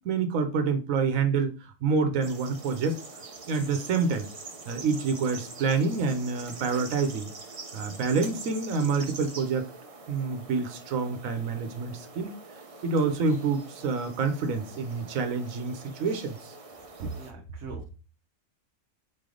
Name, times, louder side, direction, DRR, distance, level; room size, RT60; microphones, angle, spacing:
voice 1, 0.0-3.0 3.5-4.3 4.7-7.3 7.7-9.7 10.1-12.3 12.8-16.5, right 4 dB, 90° right, 8 dB, 1.2 m, -27 dB
sound 1, 2.2-17.3, right 3 dB, 40° right, 0.5 m, -44 dB
voice 2, 17.0-18.0, right 3 dB, 70° right, 0 dB, 1.1 m, -38 dB
4.3 x 3.3 x 3.7 m, 0.34 s
omnidirectional pair, 1.4 m